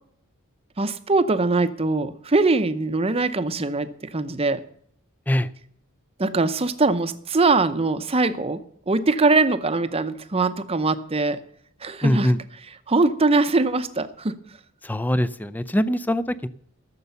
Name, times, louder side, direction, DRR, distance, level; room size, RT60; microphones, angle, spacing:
voice 1, 0.8-4.6 6.2-11.4 11.8-12.3 12.9-14.3, right 3 dB, 25° right, 11 dB, 0.7 m, -22 dB
voice 2, 12.0-12.4 14.8-16.5, equal, 10° left, 15 dB, 0.4 m, -22 dB
14.0 x 6.8 x 6.8 m, 0.66 s
head